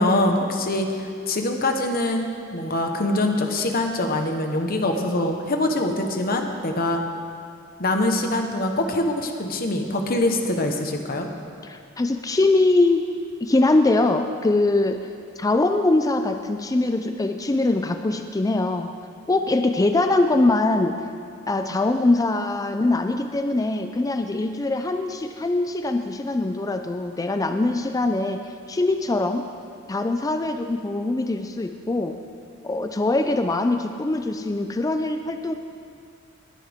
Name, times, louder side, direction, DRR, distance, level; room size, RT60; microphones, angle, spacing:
voice 1, 0.0-7.0 7.8-11.3, left 1 dB, 45° left, 4 dB, 1.1 m, -24 dB
voice 2, 11.6-13.1 13.4-15.1 15.4-18.9 19.3-21.0 21.5-29.5 29.9-32.2 32.6-35.5, left 2 dB, 15° left, 7 dB, 0.4 m, -22 dB
19.5 x 10.0 x 3.6 m, 2.4 s
head